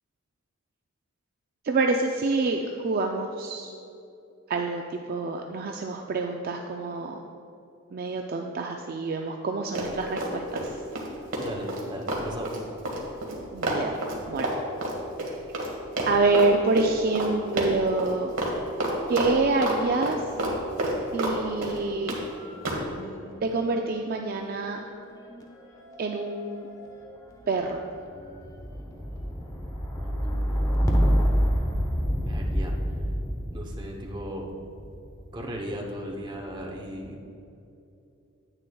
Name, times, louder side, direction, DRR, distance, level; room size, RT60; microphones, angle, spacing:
voice 1, 1.6-3.7 4.5-7.2 7.9-10.8 13.5-14.0 14.3-14.5 16.1-18.3 19.1-20.2 21.1-22.1 23.4-24.8 26.0-26.7 27.5-27.8, right 3 dB, 45° right, 3 dB, 0.3 m, -27 dB
Run, 9.7-10.7 10.9-15.7 16.0-16.5 16.8-16.9 17.1-17.3 17.6-18.1 18.4-18.5 18.8-19.8 20.0-21.4 21.6-22.2 22.6-22.8, right 1 dB, 60° right, 1.3 m, -29 dB
voice 2, 11.4-12.5 29.9-30.7 32.2-32.7 33.5-34.5 35.3-37.2, equal, 20° right, 0 dB, 0.8 m, -37 dB
sound 1, 18.8-20.1 20.4-35.4 36.2-36.8, equal, 15° left, 0.7 m, -30 dB
9.7 x 8.4 x 2.3 m, 2.7 s
head